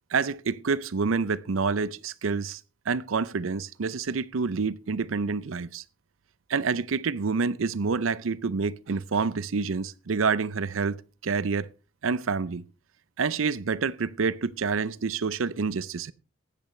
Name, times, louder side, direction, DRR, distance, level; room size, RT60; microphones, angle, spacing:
voice 1, 0.1-2.6 2.9-5.8 6.5-11.7 12.0-12.6 13.2-16.1, right 5 dB, 90° right, 0.6 m, -28 dB
15.5 x 10.5 x 3.2 m
head